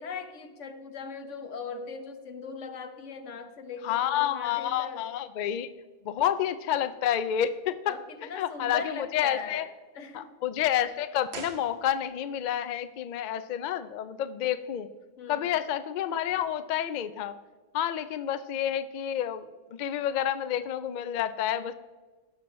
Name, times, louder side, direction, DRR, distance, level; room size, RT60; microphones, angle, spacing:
voice 1, 0.0-5.0 7.9-10.3 15.2-15.5, left 5 dB, 85° left, 8 dB, 1.2 m, -40 dB
voice 2, 3.8-5.7 6.0-7.9 8.4-9.6 10.1-14.9 15.3-17.4 17.7-21.7, left 10 dB, 60° left, 13 dB, 0.5 m, -29 dB
sound 1, 11.3-12.4 12.6-12.7, right 5 dB, 65° right, 1.1 m, -44 dB
16.5 x 6.0 x 3.1 m, 1.3 s
omnidirectional pair, 1.2 m